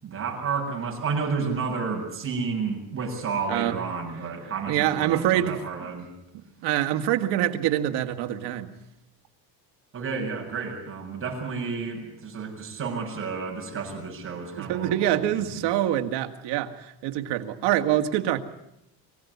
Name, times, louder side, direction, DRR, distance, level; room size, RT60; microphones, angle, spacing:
voice 1, 0.0-6.1 9.9-15.1 15.3-15.4, right 5 dB, 30° right, 0 dB, 7.6 m, -31 dB
voice 2, 4.7-5.6 6.3-8.7 14.6-18.4, right 12 dB, 70° right, 6 dB, 2.1 m, -25 dB
24.5 x 16.5 x 9.7 m, 0.82 s
cardioid pair, 145°, 44 cm